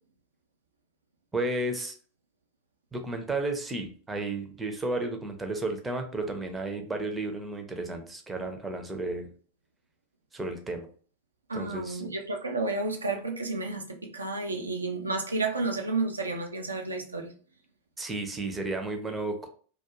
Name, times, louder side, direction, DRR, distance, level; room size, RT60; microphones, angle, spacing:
voice 1, 1.3-2.0 2.9-9.3 10.3-10.9 11.5-12.0 18.0-19.5, right 2 dB, 10° right, 0.5 m, -33 dB
voice 2, 11.5-17.3, right 3 dB, 80° right, 0.4 m, -31 dB
2.3 x 2.2 x 2.9 m
figure-of-eight pair, 90°, 0 cm